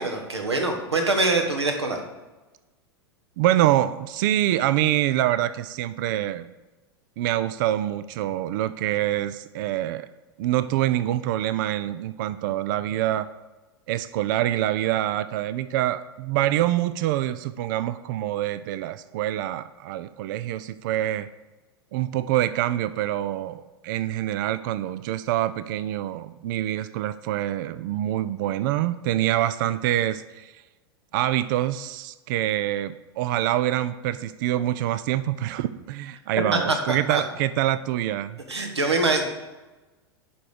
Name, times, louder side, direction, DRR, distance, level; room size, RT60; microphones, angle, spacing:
voice 1, 0.0-2.0 36.5-37.2 38.5-39.3, right 2 dB, 80° right, 4 dB, 1.5 m, -24 dB
voice 2, 3.4-6.5 7.2-10.1 10.4-13.3 13.9-21.3 21.9-30.6 31.1-38.4, right 13 dB, 50° right, 14 dB, 0.4 m, -25 dB
11.0 x 4.8 x 5.0 m, 1.1 s
figure-of-eight pair, 90°, 14 cm